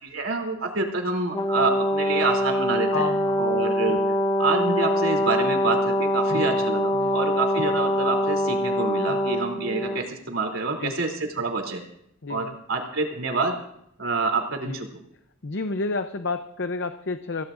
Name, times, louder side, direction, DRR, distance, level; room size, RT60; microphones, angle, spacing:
voice 1, 0.0-3.1 3.4-4.0 4.4-11.8 12.3-13.5 14.0-14.9, right 3 dB, 75° right, 1 dB, 3.3 m, -27 dB
Brass instrument, 1.3-10.0, left 1 dB, 20° left, 0.8 m, -24 dB
voice 2, 2.9-3.5 6.9-7.2 9.1-9.3 10.8-11.0 12.2-12.6 14.6-14.8 15.4-17.4, left 3 dB, 60° left, 8 dB, 0.7 m, -30 dB
25.5 x 17.0 x 2.6 m, 0.73 s
head